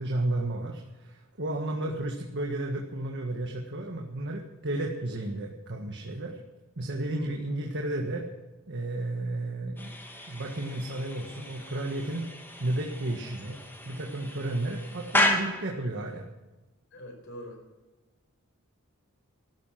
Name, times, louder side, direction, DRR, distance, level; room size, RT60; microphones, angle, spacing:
voice 1, 0.0-6.4 6.8-8.3 8.7-9.9 10.3-12.3 12.6-13.6 13.8-16.3, right 1 dB, 55° right, 1 dB, 1.7 m, -32 dB
sound 1, 9.8-15.9, left 1 dB, 10° left, 2.4 m, -33 dB
voice 2, 16.9-17.6, equal, 60° left, 3 dB, 4.9 m, -44 dB
15.0 x 12.5 x 5.9 m, 1.1 s
head